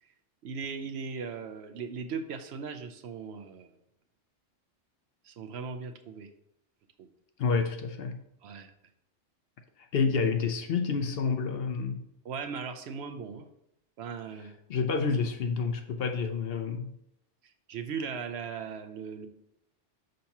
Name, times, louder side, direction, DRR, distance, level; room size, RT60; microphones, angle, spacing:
voice 1, 0.4-3.7 5.2-6.3 7.0-7.1 8.4-8.7 12.2-13.4 14.0-14.5 17.4-19.3, right 5 dB, 70° right, 8 dB, 0.8 m, -38 dB
voice 2, 7.4-8.2 9.9-12.1 14.7-16.9, left 5 dB, 65° left, 6 dB, 0.7 m, -29 dB
6.4 x 5.7 x 2.8 m, 0.77 s
omnidirectional pair, 1.2 m